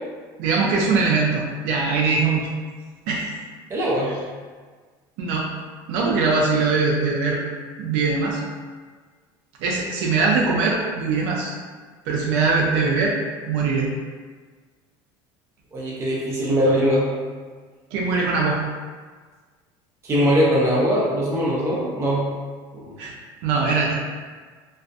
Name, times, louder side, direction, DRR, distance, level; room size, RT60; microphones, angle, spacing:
voice 1, 0.4-2.5 3.1-3.3 4.1-4.2 5.2-5.5 5.9-7.4 7.8-8.4 9.6-11.5 12.1-13.1 13.5-13.9 17.9-18.6 23.0-23.1 23.4-24.0, right 4 dB, 70° right, -2 dB, 0.4 m, -21 dB
voice 2, 3.7-4.2 15.7-17.1 20.0-22.3 22.7-22.8, equal, 25° right, -5 dB, 0.6 m, -21 dB
2.5 x 2.1 x 2.3 m, 1.5 s
cardioid pair, 140°, 11 cm